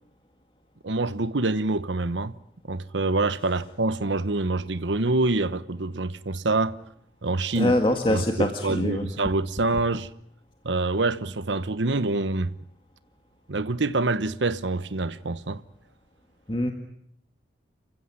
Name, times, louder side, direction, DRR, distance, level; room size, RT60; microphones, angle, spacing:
voice 1, 0.8-2.3 2.7-6.8 7.2-7.7 8.1-10.1 10.6-12.5 13.5-15.6, right 2 dB, 85° right, 1.1 m, -26 dB
voice 2, 7.5-9.1 16.5-16.7, left 1 dB, 30° left, 2.0 m, -24 dB
30.0 x 15.5 x 9.9 m
head